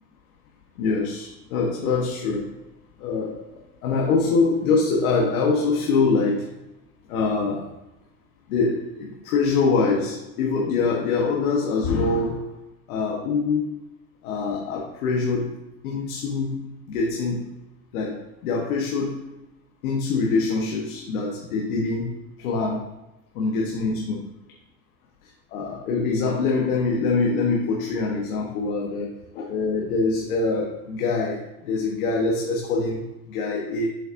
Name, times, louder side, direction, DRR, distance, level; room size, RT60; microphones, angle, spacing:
voice 1, 0.8-2.5 3.0-3.4 3.8-6.5 7.1-7.7 8.5-12.5 12.9-13.8 14.2-15.6 15.8-17.5 17.9-19.2 19.8-22.1 22.4-22.9 23.3-24.1 25.5-29.1 29.3-33.9, left 4 dB, 75° left, -2 dB, 1.2 m, -24 dB
7.3 x 5.5 x 2.6 m, 0.98 s
supercardioid pair, 180°, 44 cm